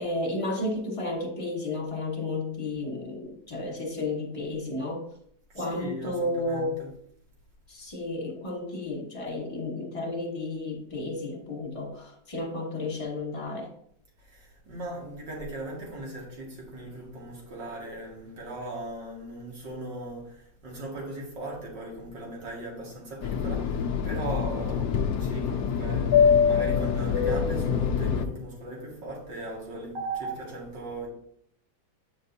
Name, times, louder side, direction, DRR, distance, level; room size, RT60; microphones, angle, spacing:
voice 1, 0.0-5.1 5.5-6.8 7.7-13.7, left 2 dB, 20° left, -1 dB, 1.1 m, -32 dB
voice 2, 5.5-6.9 14.2-31.1, right 2 dB, 65° right, -3 dB, 2.6 m, -38 dB
Fixed-wing aircraft airplane, 23.2-28.3, left 7 dB, 70° left, 0.9 m, -24 dB
8.5 x 5.0 x 2.7 m, 0.68 s
omnidirectional pair, 2.1 m